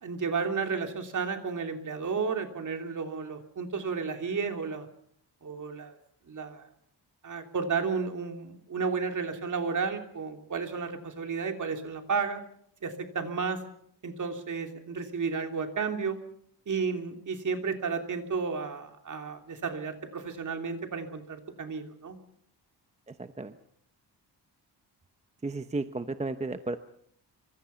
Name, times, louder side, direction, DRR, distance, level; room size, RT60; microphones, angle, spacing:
voice 1, 0.0-4.9 5.4-5.9 6.3-6.7 7.2-12.4 12.8-13.6 14.0-16.2 16.7-22.2, right 5 dB, 45° right, 5 dB, 3.2 m, -32 dB
voice 2, 23.1-23.6 25.4-26.8, right 3 dB, 15° right, 9 dB, 0.9 m, -33 dB
26.5 x 25.0 x 5.8 m, 0.66 s
wide cardioid pair, 155°, 42 cm